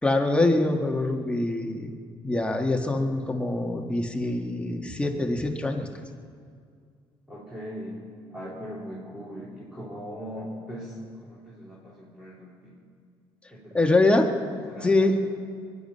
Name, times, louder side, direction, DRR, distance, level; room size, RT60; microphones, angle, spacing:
voice 1, 0.0-1.9 2.2-5.9 13.7-14.3 14.8-15.1, left 2 dB, 10° left, 3 dB, 1.6 m, -24 dB
voice 2, 7.3-8.0 8.3-12.8 13.5-14.2 14.7-15.3, equal, 10° right, -6 dB, 3.7 m, -40 dB
22.5 x 11.0 x 5.6 m, 2.2 s
cardioid pair, 85°, 10 cm